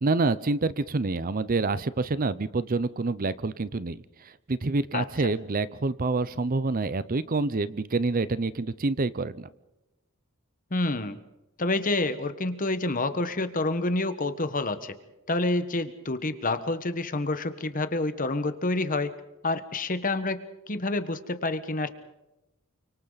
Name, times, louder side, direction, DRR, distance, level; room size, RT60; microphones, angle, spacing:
voice 1, 0.0-9.5, right 3 dB, 40° right, 16 dB, 0.6 m, -27 dB
voice 2, 4.9-5.3 10.7-11.2 11.6-14.9 15.3-19.1 19.4-21.9, left 2 dB, 40° left, 10 dB, 1.4 m, -28 dB
29.0 x 25.5 x 4.1 m, 0.97 s
head